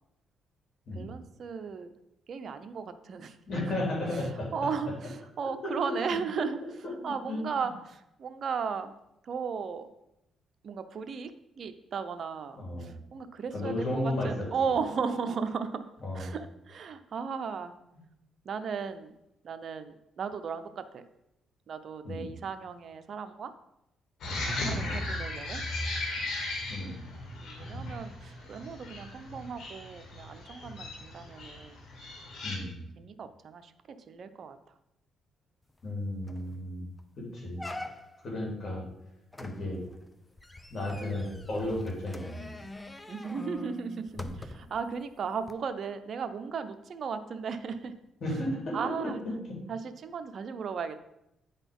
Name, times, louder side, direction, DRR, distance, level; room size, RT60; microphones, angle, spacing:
voice 1, 0.9-1.9 2.3-3.8 4.5-6.6 7.0-8.9 9.2-9.9 10.6-11.3 11.6-15.9 16.1-17.7 18.4-19.1 19.4-21.0 21.7-23.5 24.6-25.6 27.4-31.8 33.0-33.7 34.1-34.6 36.8-36.9 43.1-48.0 48.7-49.2 49.7-51.0, right 6 dB, 55° right, 10 dB, 0.7 m, -36 dB
voice 2, 3.5-4.5 5.6-6.2 7.0-7.7 12.6-12.9 13.5-14.5 16.0-16.3 22.0-22.3 24.5-24.8 26.7-27.0 32.4-32.8 35.8-36.9 37.2-37.7 38.2-38.8 39.4-39.8 40.7-42.5 44.1-44.3 48.2-48.8 49.0-49.6, left 1 dB, 50° left, -2 dB, 3.3 m, -34 dB
sound 1, 24.2-32.6, left 2 dB, 70° left, 2.1 m, -37 dB
sound 2, 35.8-35.9 36.3-36.6 37.0-37.1 37.6-38.3 39.3-44.8 45.4-45.5, left 2 dB, 15° left, 0.6 m, -44 dB
9.1 x 4.1 x 5.3 m, 0.85 s
cardioid pair, 90°, 0 cm